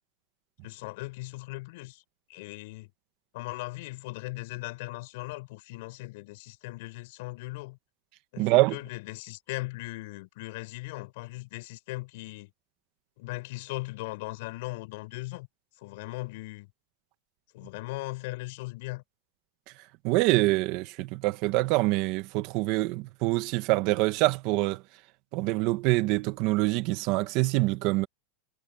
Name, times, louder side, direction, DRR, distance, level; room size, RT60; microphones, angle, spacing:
voice 1, 0.6-2.0 2.3-2.9 3.3-7.8 8.3-12.5 13.2-15.5 15.8-16.7 17.5-19.0, left 22 dB, 60° left, 7.0 m, -38 dB
voice 2, 8.4-8.8 20.0-24.8 25.3-28.1, right 20 dB, 45° right, 1.3 m, -25 dB
supercardioid pair, 150°, 0 cm